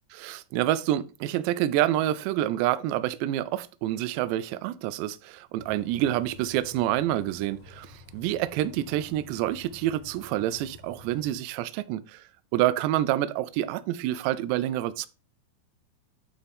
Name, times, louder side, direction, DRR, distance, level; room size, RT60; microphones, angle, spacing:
voice 1, 0.1-12.2 12.5-15.1, right 13 dB, 85° right, 2.7 m, -27 dB
Bus, 5.6-11.3, left 3 dB, 70° left, 3.3 m, -50 dB
11.5 x 4.3 x 3.5 m
omnidirectional pair, 5.1 m